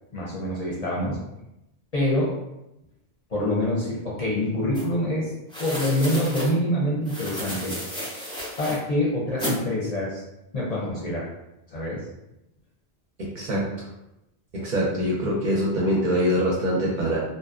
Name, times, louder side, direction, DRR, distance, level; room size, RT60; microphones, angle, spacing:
voice 1, 0.1-1.2 1.9-2.3 3.3-5.3 5.6-7.7 8.6-10.2 10.5-11.3 11.7-12.1, left 1 dB, 45° left, -6 dB, 0.6 m, -25 dB
sound 1, 4.7-4.8 5.5-6.5 7.0-8.8 9.4-9.6, equal, 5° left, 0.5 m, -32 dB
voice 2, 13.2-13.6 14.5-17.2, equal, 55° right, -4 dB, 0.6 m, -24 dB
2.7 x 2.1 x 2.4 m, 0.90 s
omnidirectional pair, 1.1 m